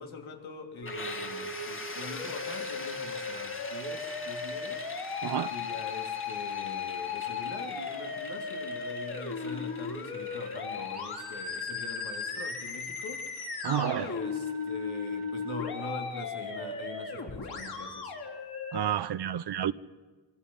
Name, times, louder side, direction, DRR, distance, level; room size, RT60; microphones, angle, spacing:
voice 1, 0.0-4.8 5.5-13.3 14.0-18.1, left 4 dB, 85° left, 3.1 m, -43 dB
Musical instrument, 0.8-18.8, left 4 dB, 55° left, 3.7 m, -36 dB
sound 1, 0.9-16.4, left 3 dB, 25° left, 1.8 m, -45 dB
voice 2, 5.2-5.5 13.6-14.1 18.7-19.7, right 10 dB, 60° right, 0.7 m, -30 dB
25.5 x 25.0 x 5.6 m
wide cardioid pair, 140°, 46 cm